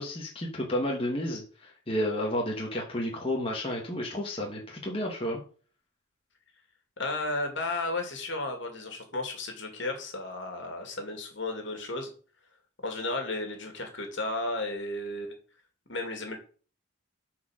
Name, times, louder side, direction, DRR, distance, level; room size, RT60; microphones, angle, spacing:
voice 1, 0.0-5.4, left 1 dB, 25° left, -1 dB, 1.6 m, -31 dB
voice 2, 7.0-12.1 12.8-15.4 15.9-16.4, left 2 dB, 65° left, 4 dB, 2.4 m, -33 dB
7.9 x 4.8 x 6.4 m, 0.40 s
head